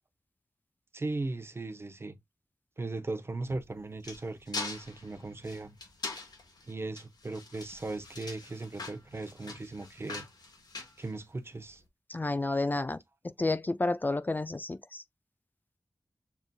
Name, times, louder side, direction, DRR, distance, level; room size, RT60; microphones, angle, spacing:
voice 1, 0.9-2.2 2.8-5.8 6.7-10.3 11.0-11.8, right 2 dB, 35° right, 0.6 m, -38 dB
sound 1, 3.4-11.7, left 3 dB, 85° left, 1.0 m, -43 dB
voice 2, 12.1-13.0 13.4-15.0, left 2 dB, 25° left, 0.3 m, -30 dB
6.9 x 2.5 x 2.2 m
wide cardioid pair, 95°, 7 cm